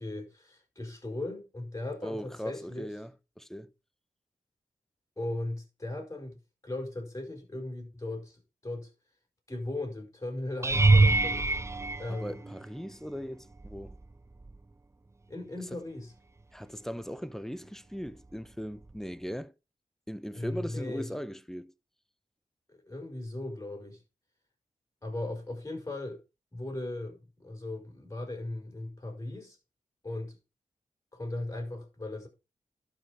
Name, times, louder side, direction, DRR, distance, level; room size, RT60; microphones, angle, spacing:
voice 1, 0.0-2.9 5.2-6.4 6.6-8.9 9.5-11.5 12.0-12.4 15.3-16.1 20.3-21.1 22.7-24.0 25.0-26.2 26.5-29.6 30.0-30.4 31.1-32.3, left 2 dB, 25° left, 5.2 m, -37 dB
voice 2, 2.0-3.1 3.4-3.7 12.1-14.0 16.5-19.5 20.1-21.7, equal, 5° left, 0.9 m, -39 dB
sound 1, 10.6-12.9 13.6-14.0 14.4-14.6 18.9-19.0, right 3 dB, 20° right, 0.6 m, -24 dB
12.0 x 5.5 x 4.8 m
cardioid pair, 55°, 14 cm